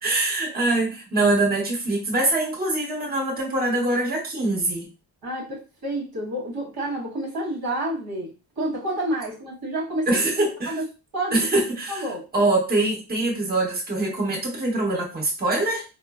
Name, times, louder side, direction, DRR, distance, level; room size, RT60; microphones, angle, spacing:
voice 1, 0.0-4.9 10.1-10.8 11.3-12.0 12.3-15.8, right 2 dB, 20° right, -2 dB, 1.3 m, -23 dB
voice 2, 5.2-10.2 10.7-10.8 11.1-11.5 11.9-12.3, right 1 dB, 50° right, -3 dB, 1.3 m, -29 dB
3.6 x 2.1 x 2.4 m, 0.31 s
cardioid pair, 90°, 46 cm